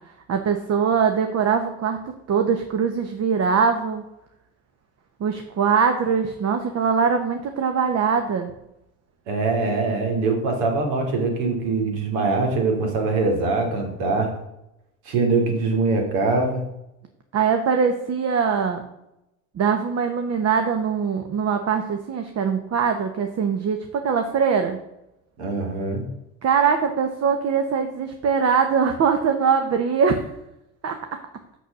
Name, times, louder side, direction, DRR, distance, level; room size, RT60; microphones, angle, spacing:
voice 1, 0.3-2.0 2.3-4.0 5.2-8.5 17.3-18.8 19.5-24.8 26.4-30.3 30.8-31.0, right 6 dB, 40° right, 6 dB, 1.1 m, -22 dB
voice 2, 9.3-14.3 15.1-16.6 25.4-26.0, right 3 dB, 75° right, 3 dB, 2.8 m, -23 dB
6.7 x 6.4 x 6.6 m, 0.87 s
supercardioid pair, 90°, 39 cm